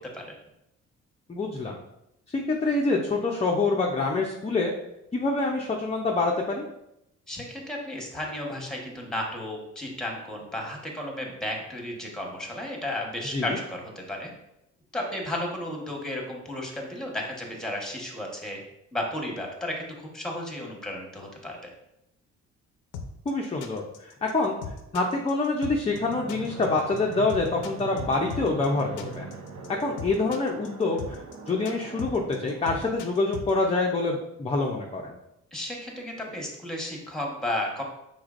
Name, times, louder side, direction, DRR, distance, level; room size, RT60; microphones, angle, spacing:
voice 1, 1.3-1.8 2.3-4.7 5.1-6.6 13.3-13.6 23.3-24.6 24.9-29.3 29.8-31.2 31.5-35.1, left 3 dB, 20° left, 0 dB, 0.6 m, -26 dB
voice 2, 7.3-14.3 14.9-18.6 18.9-21.6 35.5-37.8, left 1 dB, ahead, 0 dB, 1.3 m, -33 dB
sound 1, 22.9-33.5, left 5 dB, 90° left, 0.6 m, -38 dB
Fixed-wing aircraft airplane, 25.9-33.0, right 4 dB, 65° right, 0.7 m, -41 dB
4.9 x 3.9 x 2.5 m, 0.84 s
cardioid pair, 90°, 30 cm